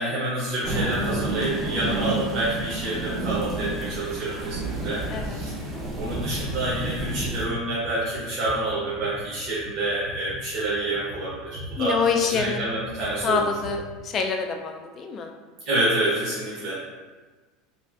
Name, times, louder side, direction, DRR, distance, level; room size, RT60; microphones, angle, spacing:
voice 1, 0.0-5.6 5.9-12.0 12.3-13.5 15.6-16.7, right 2 dB, 50° right, -9 dB, 1.0 m, -28 dB
sound 1, 0.6-7.5, right 2 dB, 25° right, 0.7 m, -30 dB
sound 2, 5.9-14.0, equal, 70° right, 0.6 m, -41 dB
voice 2, 11.8-12.7 13.2-15.3, left 5 dB, 35° left, 3 dB, 0.3 m, -26 dB
3.1 x 2.5 x 2.4 m, 1.3 s
supercardioid pair, 120°, 0 cm